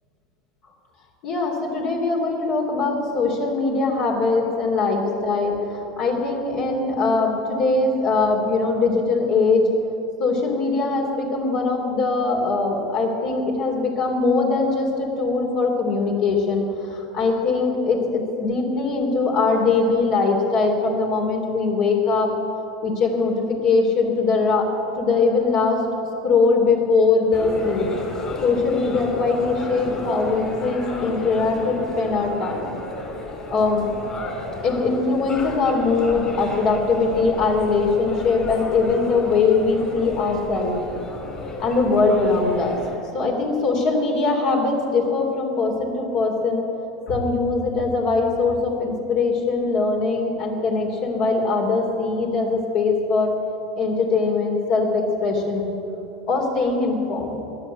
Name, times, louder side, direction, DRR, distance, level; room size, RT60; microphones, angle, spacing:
voice 1, 1.2-9.7 10.2-22.3 22.8-24.7 25.0-25.8 26.2-27.9 28.4-32.8 33.5-33.9 34.6-40.8 41.6-42.8 43.1-46.7 47.1-53.4 53.8-55.8 56.3-57.4, left 4 dB, 50° left, 0 dB, 3.6 m, -21 dB
sound 1, 27.3-43.0, left 2 dB, 30° left, 4.4 m, -33 dB
15.5 x 11.0 x 8.2 m, 2.9 s
figure-of-eight pair, 80°, 2 cm